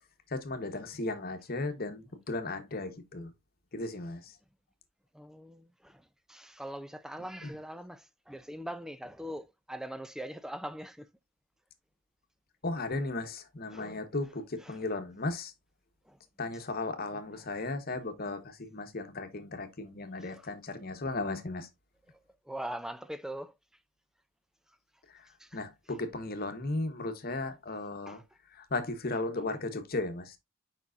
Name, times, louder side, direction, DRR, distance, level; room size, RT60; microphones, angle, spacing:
voice 1, 0.3-3.3 3.7-4.2 7.4-7.5 12.6-15.5 16.4-21.7 25.5-28.2 28.6-30.4, left 2 dB, 45° left, 1.1 m, -35 dB
voice 2, 5.1-6.0 6.3-11.1 13.7-13.9 14.6-14.8 16.1-16.2 17.1-17.2 20.3-20.5 22.5-23.5 25.4-25.6 28.1-28.2, right 1 dB, ahead, 0.4 m, -42 dB
7.2 x 5.4 x 2.5 m
head